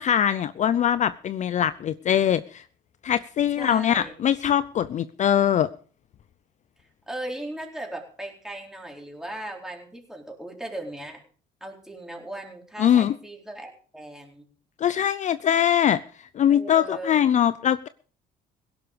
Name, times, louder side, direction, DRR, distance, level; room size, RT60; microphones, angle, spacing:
voice 1, 0.0-2.6 3.0-5.7 12.8-13.1 14.8-16.0 16.3-17.9, left 9 dB, 45° left, 15 dB, 0.5 m, -22 dB
voice 2, 3.6-4.2 7.1-11.2 11.6-14.4 16.5-17.2, right 1 dB, 5° right, 1 dB, 4.2 m, -37 dB
17.0 x 11.5 x 5.1 m, 0.44 s
cardioid pair, 110°, 17 cm